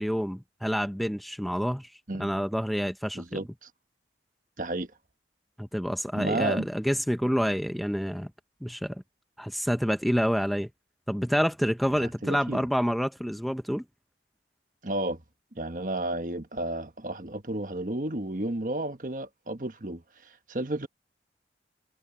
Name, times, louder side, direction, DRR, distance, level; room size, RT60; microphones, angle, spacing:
voice 1, 0.0-1.9 2.2-3.5 5.6-8.3 8.6-9.0 9.4-10.7 11.1-13.8, equal, ahead, 0.6 m, -28 dB
voice 2, 3.1-3.7 4.6-4.9 6.1-6.7 12.0-12.6 14.8-15.2 15.5-20.9, right 1 dB, 45° right, 1.3 m, -32 dB
head